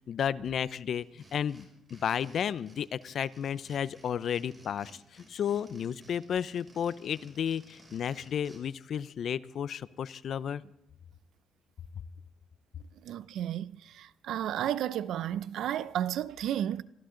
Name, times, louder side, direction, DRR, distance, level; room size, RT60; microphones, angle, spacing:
voice 1, 0.1-10.6, left 8 dB, 60° left, 0.6 m, -33 dB
sound 1, 0.9-8.6, right 2 dB, 25° right, 6.6 m, -57 dB
voice 2, 13.0-16.8, right 11 dB, 80° right, 0.6 m, -32 dB
26.0 x 14.5 x 3.9 m
cardioid pair, 90°, 0 cm